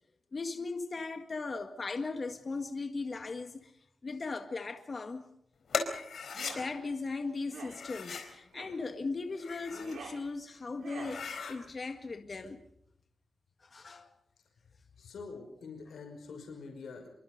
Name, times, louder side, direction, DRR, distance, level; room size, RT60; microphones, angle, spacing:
voice 1, 0.3-3.7 4.0-5.3 6.3-12.6 13.6-14.1, left 3 dB, 35° left, 1.9 m, -38 dB
sound 1, 5.7-6.6 7.7-8.3 9.2-10.0 10.4-10.5 10.9-11.6, left 5 dB, 65° left, 4.2 m, -38 dB
sound 2, 6.2-6.7 7.4-7.8 8.5-8.8 9.6-10.2 10.8-11.2, right 4 dB, 85° right, 6.3 m, -46 dB
voice 2, 15.0-17.1, left 4 dB, 85° left, 5.7 m, -45 dB
27.0 x 23.5 x 5.3 m
wide cardioid pair, 145°, 0 cm